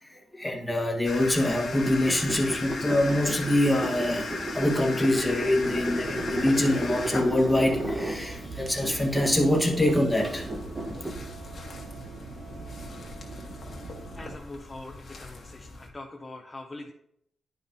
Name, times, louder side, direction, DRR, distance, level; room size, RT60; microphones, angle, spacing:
voice 1, 0.1-10.5, left 1 dB, 10° left, 1 dB, 1.2 m, -25 dB
sound 1, 1.0-15.9, left 3 dB, 50° left, 1.3 m, -39 dB
sound 2, 1.7-8.2 8.7-11.1, right 1 dB, 30° right, 1.0 m, -34 dB
sound 3, 5.7-14.4, right 4 dB, 60° right, 0.9 m, -42 dB
voice 2, 14.1-16.9, left 2 dB, 25° left, 1 dB, 0.7 m, -43 dB
10.0 x 5.5 x 2.7 m, 0.75 s
cardioid pair, 100°, 0 cm